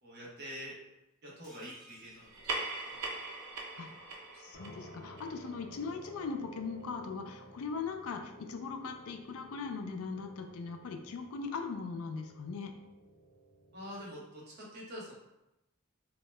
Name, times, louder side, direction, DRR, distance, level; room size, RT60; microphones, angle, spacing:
voice 1, 0.0-0.7 1.2-3.3 3.8-4.2 4.5-4.6 13.7-15.1, equal, 50° right, -5 dB, 0.9 m, -47 dB
sound 1, 1.4-3.4 3.7-3.8 4.1-4.2, equal, ahead, 0.8 m, -59 dB
sound 2, 2.2-7.1, right 3 dB, 85° right, 0.5 m, -42 dB
voice 2, 4.4-12.7, left 5 dB, 85° left, 5 dB, 0.4 m, -39 dB
sound 3, 4.5-14.0, right 1 dB, 55° left, 0.7 m, -54 dB
2.8 x 2.1 x 3.2 m, 0.92 s
head